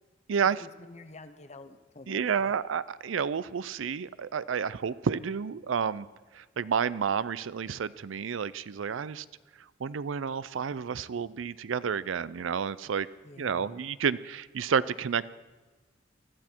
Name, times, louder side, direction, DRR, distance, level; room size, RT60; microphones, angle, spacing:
voice 1, 0.4-2.6 13.2-13.8, left 2 dB, 35° left, 11 dB, 0.9 m, -48 dB
voice 2, 2.1-6.1 6.3-9.2 9.8-13.1 13.4-15.3, right 6 dB, 80° right, 18 dB, 0.5 m, -30 dB
20.5 x 13.5 x 4.5 m, 1.3 s
head